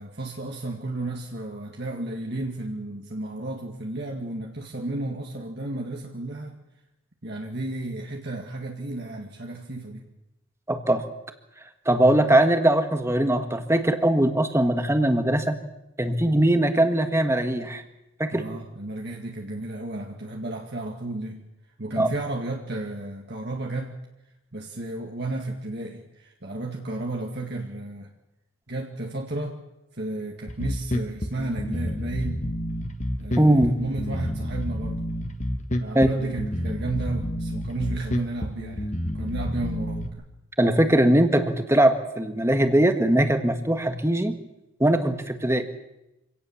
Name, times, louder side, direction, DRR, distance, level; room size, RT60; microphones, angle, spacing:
voice 1, 0.0-6.5 7.2-10.0 18.3-21.4 21.8-24.0 24.5-28.1 28.7-29.6 29.9-32.5 33.2-35.0 35.8-40.2, right 2 dB, 50° right, 0 dB, 2.0 m, -33 dB
voice 2, 10.7-11.0 11.8-15.6 16.0-17.8 18.2-18.4 22.0-22.1 33.3-33.8 35.9-36.1 40.6-44.4 44.8-45.7, right 1 dB, 15° right, 7 dB, 1.5 m, -21 dB
Bass guitar, 30.5-40.1, equal, 35° left, 1.6 m, -29 dB
26.0 x 17.5 x 7.2 m, 0.93 s
head